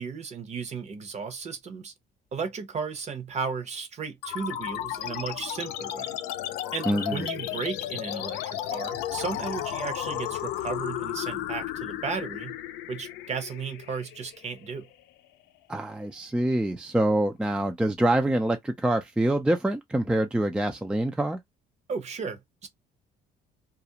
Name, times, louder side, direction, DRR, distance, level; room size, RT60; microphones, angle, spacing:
voice 1, 0.0-1.9 2.3-6.1 6.7-12.6 12.9-14.9 21.9-22.7, right 5 dB, 40° right, 0.8 m, -35 dB
sound 1, 4.2-15.2, left 12 dB, 85° left, 0.4 m, -34 dB
voice 2, 6.9-7.2 15.7-21.4, right 1 dB, 5° right, 0.3 m, -25 dB
2.4 x 2.1 x 2.7 m
cardioid pair, 110°, 17 cm